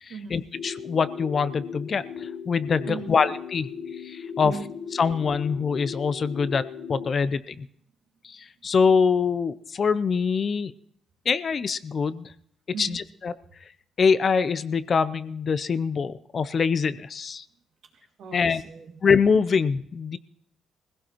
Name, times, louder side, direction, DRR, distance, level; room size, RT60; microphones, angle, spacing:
voice 1, 0.0-3.7 4.0-4.5 5.0-7.7 8.2-10.7 11.3-12.3 12.8-13.3 14.0-17.4 18.3-18.6 19.0-20.2, left 5 dB, 45° left, 15 dB, 0.5 m, -24 dB
sound 1, 0.5-7.1, left 7 dB, 75° left, 0.9 m, -37 dB
voice 2, 3.7-4.7 7.0-7.1 12.7-13.0 17.8-19.0, right 5 dB, 70° right, 2 dB, 2.2 m, -39 dB
21.0 x 16.5 x 3.0 m, 0.67 s
cardioid pair, 90°, 0 cm